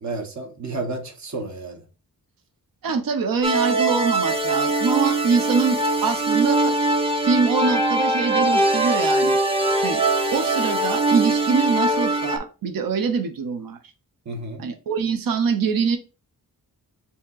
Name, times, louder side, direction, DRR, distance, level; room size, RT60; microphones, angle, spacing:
voice 1, 0.0-1.8 14.3-14.7, right 2 dB, 55° right, 1.0 m, -31 dB
voice 2, 2.8-6.8 7.2-9.4 9.8-10.0 10.3-13.8 14.6-16.0, right 5 dB, 70° right, 0.7 m, -24 dB
sound 1, 3.4-12.4, right 2 dB, 15° right, 0.6 m, -21 dB
7.0 x 2.8 x 2.4 m
wide cardioid pair, 150°, 35 cm